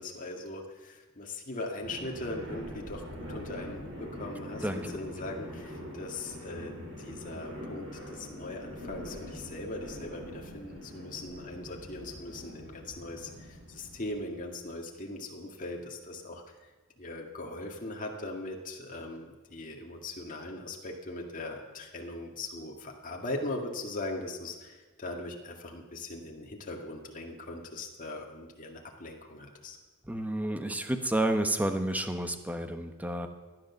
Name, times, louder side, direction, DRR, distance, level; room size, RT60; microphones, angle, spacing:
voice 1, 0.0-4.6 4.9-16.4 17.0-29.8, left 2 dB, 40° left, 0 dB, 2.1 m, -40 dB
sound 1, 1.8-14.2, equal, 85° right, 5.1 m, -43 dB
voice 2, 4.6-5.0 30.0-33.3, right 1 dB, 5° right, 7 dB, 1.0 m, -30 dB
15.5 x 10.5 x 7.1 m, 1.4 s
head